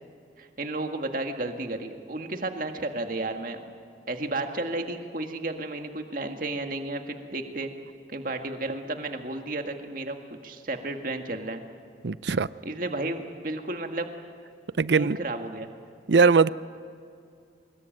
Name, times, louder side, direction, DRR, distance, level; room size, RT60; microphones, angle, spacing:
voice 1, 0.4-3.7 4.1-7.7 8.1-11.6 12.7-14.1 14.9-15.7, right 2 dB, 50° right, 5 dB, 1.8 m, -33 dB
voice 2, 12.0-12.5 14.8-15.2 16.1-16.5, right 4 dB, 75° right, 17 dB, 0.6 m, -20 dB
24.5 x 21.5 x 9.2 m, 2.4 s
head